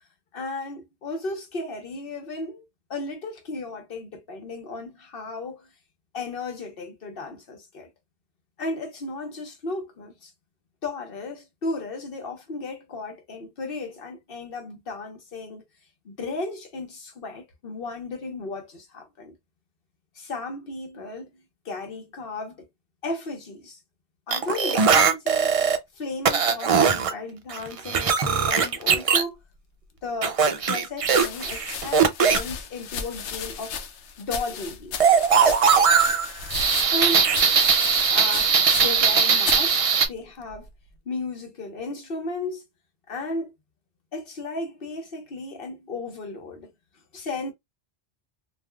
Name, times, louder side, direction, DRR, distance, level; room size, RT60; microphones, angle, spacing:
voice 1, 0.3-2.6 2.9-5.7 6.1-7.9 8.6-10.3 10.8-15.6 16.0-19.3 20.1-22.7 23.0-23.8 24.3-25.5 25.9-29.4 30.0-33.7 34.2-35.2 36.0-36.2 36.9-37.3 38.1-40.7 41.0-42.6 43.1-43.5 44.1-46.7 47.1-47.5, left 2 dB, 60° left, 1.1 m, -34 dB
sound 1, 24.3-25.8 26.2-27.1 27.5-29.2 30.2-32.4 35.0-40.1, right 6 dB, 55° right, 0.3 m, -20 dB
sound 2, 30.0-30.1 31.0-39.1 39.4-39.7 40.5-40.9, left 6 dB, 85° left, 0.9 m, -35 dB
3.3 x 2.5 x 2.3 m
omnidirectional pair, 1.1 m